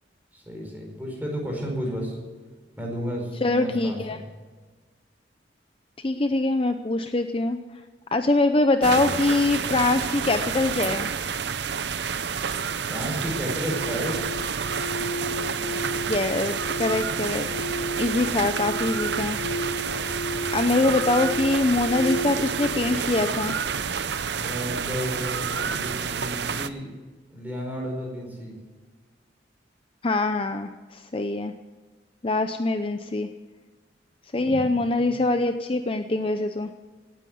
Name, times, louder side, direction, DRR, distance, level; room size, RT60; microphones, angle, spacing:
voice 1, 0.3-2.2 2.8-4.2 12.9-14.3 24.4-26.9 27.3-28.5 34.5-34.7 35.0-35.1, equal, 10° right, 0 dB, 4.8 m, -32 dB
voice 2, 3.4-4.2 6.0-7.6 8.1-11.1 16.1-17.5 18.0-19.4 20.5-23.6 30.0-31.5 32.2-33.3 34.3-36.7, left 2 dB, 30° left, 8 dB, 0.6 m, -23 dB
sound 1, 8.8-26.7, right 6 dB, 65° right, 0.7 m, -29 dB
sound 2, 13.4-24.4, equal, 75° left, 3.5 m, -34 dB
18.0 x 9.2 x 8.0 m, 1.4 s
head